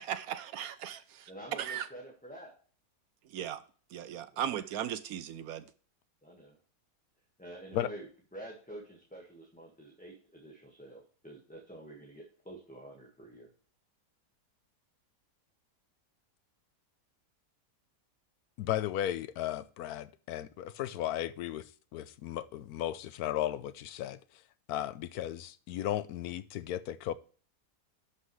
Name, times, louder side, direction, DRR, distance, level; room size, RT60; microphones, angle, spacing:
voice 1, 0.0-1.9 3.3-3.6 3.9-5.6, right 10 dB, 70° right, 1.0 m, -37 dB
voice 2, 1.3-2.5 4.3-4.7 6.2-6.6 7.4-8.1 8.3-13.5, right 1 dB, 5° left, 1.5 m, -48 dB
voice 3, 18.6-21.6 21.9-24.2 24.7-27.1, left 12 dB, 70° left, 1.0 m, -35 dB
11.5 x 5.8 x 3.2 m
omnidirectional pair, 1.8 m